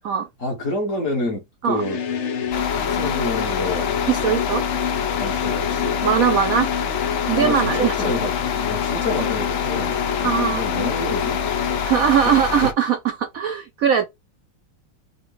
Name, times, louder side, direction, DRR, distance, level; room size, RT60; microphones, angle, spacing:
voice 1, 0.4-2.0 2.4-3.9 5.2-6.0 7.4-11.7 12.2-12.4, left 1 dB, 45° left, 1.4 m, -28 dB
sound 1, 1.7-12.0, left 7 dB, 90° left, 0.6 m, -27 dB
sound 2, 2.5-12.7, left 8 dB, 70° left, 1.1 m, -27 dB
voice 2, 4.1-4.6 6.0-6.7 7.2-8.0 10.2-10.8 11.8-14.1, right 8 dB, 85° right, 0.7 m, -20 dB
6.1 x 2.3 x 3.9 m
omnidirectional pair, 2.3 m